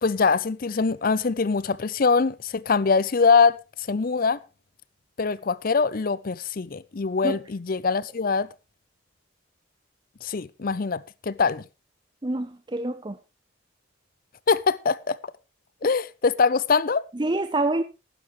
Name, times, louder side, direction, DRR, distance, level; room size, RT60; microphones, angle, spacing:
voice 1, 0.0-3.6 3.9-4.4 5.2-8.5 10.2-11.6 14.5-15.2 15.8-17.0, left 5 dB, 45° left, 0.5 m, -23 dB
voice 2, 12.2-13.2 17.1-17.8, right 2 dB, 20° right, 0.6 m, -26 dB
15.0 x 12.0 x 3.1 m
head